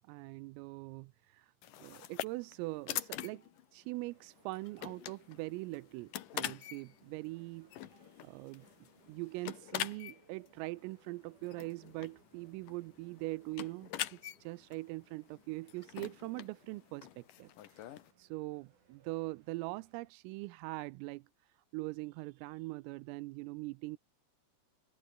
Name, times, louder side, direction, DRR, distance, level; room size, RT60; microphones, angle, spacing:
voice 1, 0.1-1.5 1.8-3.4 3.7-7.7 8.2-8.7 9.1-24.0, right 22 dB, 85° right, 3.3 m, -42 dB
sound 1, 1.6-18.1, left 12 dB, 75° left, 1.9 m, -45 dB
sound 2, 3.0-16.0, right 6 dB, 65° right, 8.7 m, -77 dB
sound 3, 3.9-20.1, right 6 dB, 40° right, 4.9 m, -69 dB
omnidirectional pair, 6.0 m